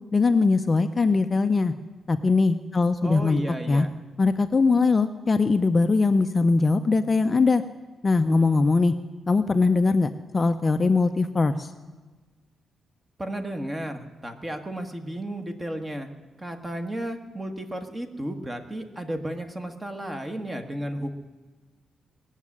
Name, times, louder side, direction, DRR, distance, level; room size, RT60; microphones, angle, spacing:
voice 1, 0.1-1.7 2.1-3.4 3.7-3.9 4.2-7.6 8.0-8.9 9.3-11.7, left 3 dB, 25° left, 8 dB, 0.6 m, -21 dB
voice 2, 3.0-3.9 13.2-16.1 16.4-21.2, right 1 dB, 15° right, 6 dB, 1.5 m, -33 dB
19.5 x 7.3 x 9.8 m, 1.3 s
cardioid pair, 130°, 0 cm